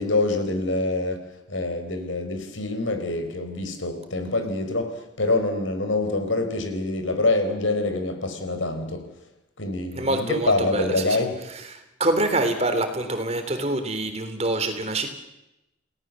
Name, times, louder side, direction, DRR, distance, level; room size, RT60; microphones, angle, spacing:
voice 1, 0.0-9.1 9.6-11.4, left 2 dB, 85° left, 7 dB, 4.9 m, -26 dB
voice 2, 9.9-11.2 11.7-15.1, right 2 dB, 35° right, 7 dB, 3.5 m, -25 dB
29.5 x 18.5 x 7.6 m, 0.89 s
head